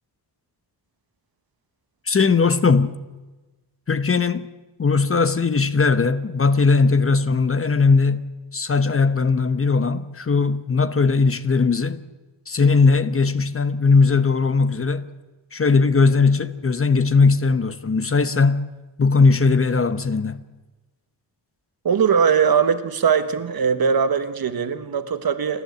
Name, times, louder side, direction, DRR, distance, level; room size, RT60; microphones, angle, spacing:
voice 1, 2.1-3.0 3.9-4.5 4.8-12.0 12.5-15.1 15.5-18.6 19.0-20.4, left 4 dB, 30° left, 1.0 m, -19 dB
voice 2, 21.8-25.6, right 6 dB, 55° right, 1.5 m, -20 dB
29.0 x 12.0 x 8.2 m
wide cardioid pair, 105°, 42 cm